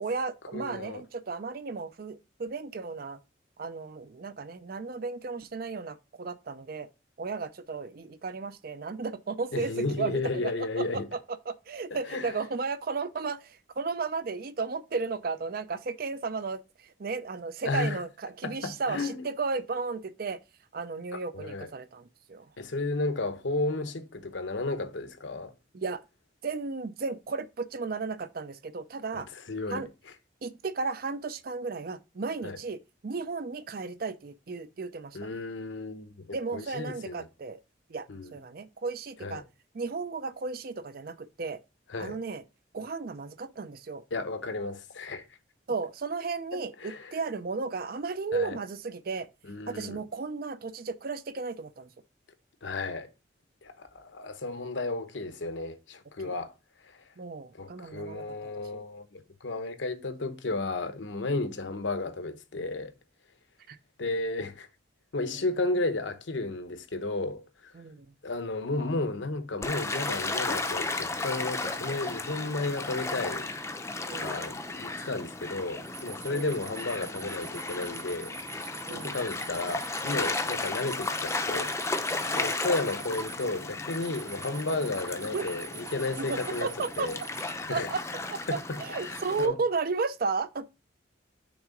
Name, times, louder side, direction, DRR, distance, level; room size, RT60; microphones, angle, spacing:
voice 1, 0.0-3.2 3.6-6.9 7.2-9.7 10.0-11.2 11.5-20.4 20.7-22.5 25.7-26.0 26.4-29.3 29.7-29.9 30.4-35.3 36.3-37.6 37.9-38.1 38.3-39.4 39.7-41.6 42.0-42.4 42.7-44.0 45.7-49.3 49.7-51.9 56.2-56.4 57.2-58.8 63.7-63.8 65.3-65.4 67.7-68.1 74.1-74.4 76.3-76.6 78.9-79.2 80.4-80.6 82.3-82.5 85.3-85.5 86.2-87.1 87.7-88.0 88.3-90.6, right 4 dB, 50° right, 0.5 m, -34 dB
voice 2, 0.5-1.0 9.5-11.1 12.1-12.4 17.6-18.0 18.4-19.2 21.1-21.7 22.6-25.5 29.1-29.8 32.4-32.6 35.1-37.3 38.1-38.3 39.2-39.4 41.9-42.2 44.1-45.2 46.5-47.2 48.3-48.6 49.5-50.0 52.6-53.1 53.6-56.5 56.8-57.0 57.5-62.9 64.0-64.7 65.1-67.7 68.2-73.5 74.1-78.3 78.9-81.7 82.4-86.7 87.0-87.2 87.7-87.9 88.5-89.6, left 2 dB, 75° left, 0.9 m, -33 dB
Gull seagull / Waves surf, 69.6-89.5, left 3 dB, 15° left, 0.5 m, -34 dB
sound 1, 75.9-87.5, right 6 dB, 80° right, 2.0 m, -46 dB
6.1 x 3.7 x 5.0 m
head